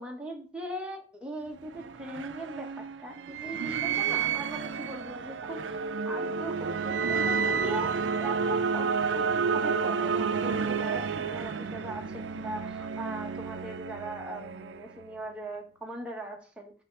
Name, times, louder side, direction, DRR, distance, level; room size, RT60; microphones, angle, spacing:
voice 1, 0.0-16.7, right 1 dB, 5° right, 0 dB, 1.2 m, -40 dB
sound 1, 1.5-15.2, right 5 dB, 90° right, 0.5 m, -30 dB
5.8 x 5.7 x 3.4 m, 0.39 s
head